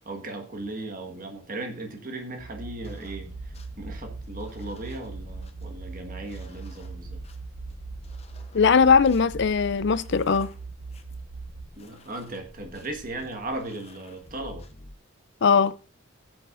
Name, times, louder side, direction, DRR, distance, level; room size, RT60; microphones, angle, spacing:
voice 1, 0.0-7.2 11.7-14.7, right 2 dB, 40° right, 1.6 m, -37 dB
sound 1, 2.4-11.6, right 4 dB, 10° right, 5.4 m, -40 dB
sound 2, 2.8-14.9, left 1 dB, 30° left, 0.8 m, -47 dB
voice 2, 8.5-10.5 15.4-15.7, left 5 dB, 55° left, 0.5 m, -19 dB
17.0 x 7.8 x 2.6 m
head